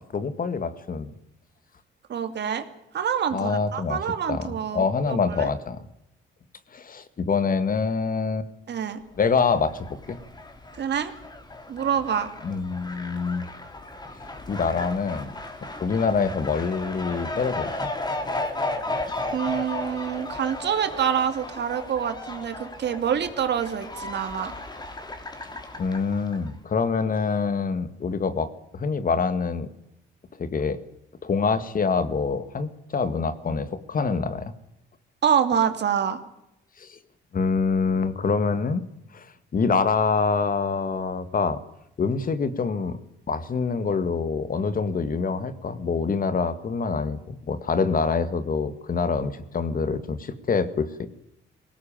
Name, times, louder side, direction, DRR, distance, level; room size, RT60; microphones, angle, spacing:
voice 1, 0.1-1.1 3.3-4.0 4.3-4.5 4.7-5.8 6.7-8.5 9.2-10.2 12.4-13.7 14.5-15.3 15.8-17.7 25.8-29.7 30.4-30.8 31.2-34.5 36.8-37.0 37.3-38.8 39.1-39.3 39.5-41.6 42.0-43.0 43.3-51.1, left 5 dB, 45° left, 12 dB, 1.9 m, -25 dB
voice 2, 2.1-2.7 2.9-5.5 8.7-9.0 10.8-11.1 11.7-12.3 19.3-24.5 35.2-36.2, right 8 dB, 60° right, 8 dB, 2.6 m, -26 dB
Fowl, 9.2-26.5, left 2 dB, 20° left, 3.4 m, -35 dB
21.0 x 18.0 x 8.9 m, 0.85 s
cardioid pair, 90°, 20 cm